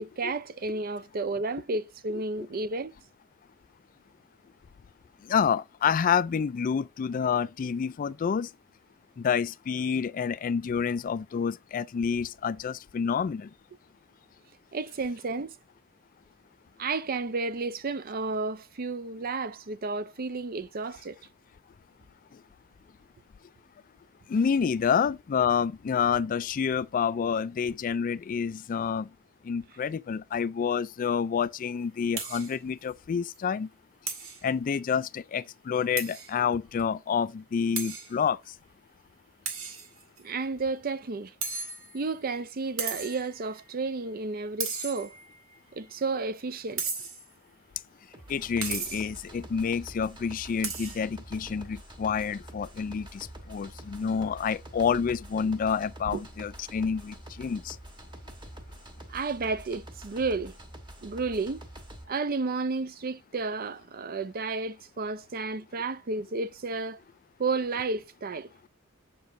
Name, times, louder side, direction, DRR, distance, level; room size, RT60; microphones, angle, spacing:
voice 1, 0.0-2.9 14.7-15.6 16.8-21.2 40.2-41.3 41.9-45.1 45.7-46.8 56.1-56.2 59.1-60.5 61.0-61.6 62.1-67.0 67.4-68.5, right 3 dB, 45° right, 0.5 m, -32 dB
voice 2, 5.2-8.5 9.2-13.5 24.3-29.1 29.4-33.7 34.4-38.4 48.3-57.8, left 6 dB, 40° left, 0.3 m, -28 dB
sound 1, 32.2-32.6 32.9-33.0 33.3-33.4 34.1-34.4 36.0-36.3 36.8-36.9 37.8-38.1 39.5-40.2 41.4-42.1 42.8-43.3 44.6-45.3 46.8-47.3 48.6-49.2 50.6-51.0, right 5 dB, 80° right, 2.2 m, -35 dB
sound 2, 48.1-62.0, right 1 dB, 25° right, 1.3 m, -47 dB
7.4 x 7.0 x 2.6 m
head